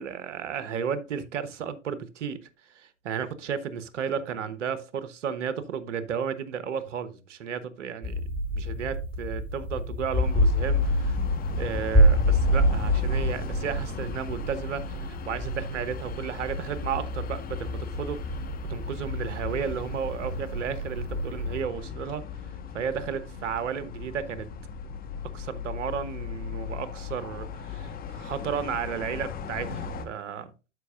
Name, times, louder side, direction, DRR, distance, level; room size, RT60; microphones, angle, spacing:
voice 1, 0.0-2.4 2.8-8.2 8.5-11.2 11.6-18.2 18.7-22.2 22.7-24.5 25.3-30.5, right 7 dB, 70° right, 1.1 m, -33 dB
sound 1, 8.0-21.6, equal, 5° right, 1.9 m, -27 dB
sound 2, 10.1-30.1, left 6 dB, 25° left, 1.2 m, -38 dB
12.5 x 5.1 x 2.5 m
hypercardioid pair, 110°, 38 cm